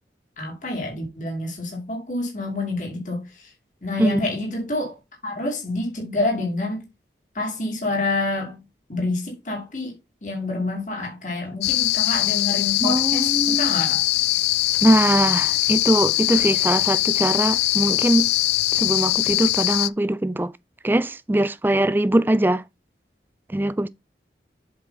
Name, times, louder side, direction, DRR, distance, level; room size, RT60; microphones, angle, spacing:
voice 1, 0.4-3.5 3.8-5.0 5.2-6.8 7.3-8.6 8.9-9.9 10.2-14.0, left 2 dB, 45° left, 2.6 m, -28 dB
sound 1, 11.6-19.9, left 18 dB, 75° left, 0.3 m, -21 dB
voice 2, 12.8-13.7 14.8-18.3 18.7-20.5 20.8-22.6 23.5-23.9, right 1 dB, 10° right, 0.4 m, -21 dB
7.7 x 5.1 x 4.0 m
head